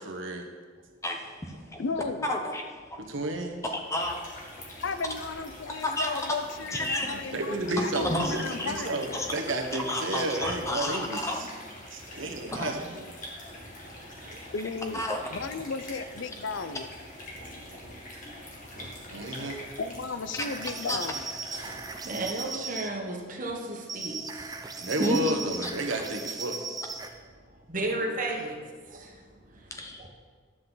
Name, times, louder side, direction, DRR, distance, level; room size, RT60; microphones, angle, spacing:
voice 1, 0.1-0.5 3.1-3.6 7.1-11.5 11.9-13.1 19.1-19.6 24.8-26.6, right 1 dB, 80° right, 3 dB, 1.2 m, -31 dB
voice 2, 1.0-1.8 2.3-3.0 3.7-4.4 5.8-6.2 6.7-7.1 7.8-8.7 9.1-9.3 9.7-11.5 12.5-12.7 14.9-15.2 20.9-21.0 25.0-25.2 25.6-25.7 29.7-30.0, left 1 dB, 15° left, 2 dB, 0.8 m, -31 dB
voice 3, 1.8-2.3 4.8-9.1 14.5-15.0 15.3-16.9 19.8-21.3, left 4 dB, 70° left, 11 dB, 0.5 m, -35 dB
sound 1, 3.7-22.4, left 1 dB, 40° left, 2.0 m, -45 dB
voice 4, 12.1-12.6 13.4-14.5 17.3-18.3 18.6-19.5 21.5-24.5 27.7-28.6 28.9-29.7 30.0-30.1, right 2 dB, 40° right, 1 dB, 1.3 m, -36 dB
sound 2, 20.4-22.9 23.9-27.2, right 4 dB, 20° right, 0.5 m, -38 dB
11.0 x 7.6 x 4.0 m, 1.5 s
head